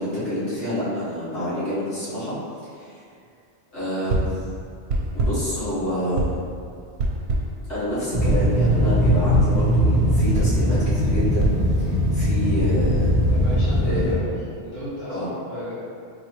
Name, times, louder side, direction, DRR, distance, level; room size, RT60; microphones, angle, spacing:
voice 1, 0.0-2.3 2.7-2.9 3.7-4.3 5.1-6.4 7.7-11.5 11.8-13.3 13.8-14.1 15.1-15.3, equal, 80° left, -12 dB, 1.8 m, -28 dB
sound 1, 4.1-4.5 4.9-5.5 6.2-6.5 7.0-7.6 8.3-8.5 9.0-9.6 10.3-12.4, right 2 dB, 75° right, 0.8 m, -26 dB
sound 2, 8.1-14.2, equal, 45° right, 0.9 m, -20 dB
voice 2, 13.3-14.3 14.6-15.7, equal, 25° left, -12 dB, 1.4 m, -33 dB
4.1 x 2.6 x 3.2 m, 2.4 s
omnidirectional pair, 1.2 m